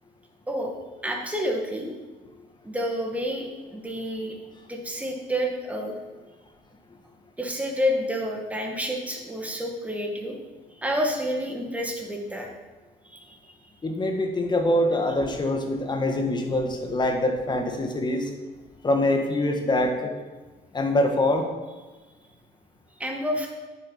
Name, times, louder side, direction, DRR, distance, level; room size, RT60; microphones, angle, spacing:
voice 1, 1.0-2.0 2.6-4.3 4.7-5.9 7.4-10.3 10.8-12.5 13.0-13.4 23.0-23.5, equal, 10° right, 1 dB, 2.1 m, -29 dB
voice 2, 13.8-18.3 18.8-20.1 20.7-21.5, left 1 dB, 25° left, 4 dB, 1.7 m, -24 dB
9.4 x 7.5 x 5.7 m, 1.3 s
cardioid pair, 110°, 17 cm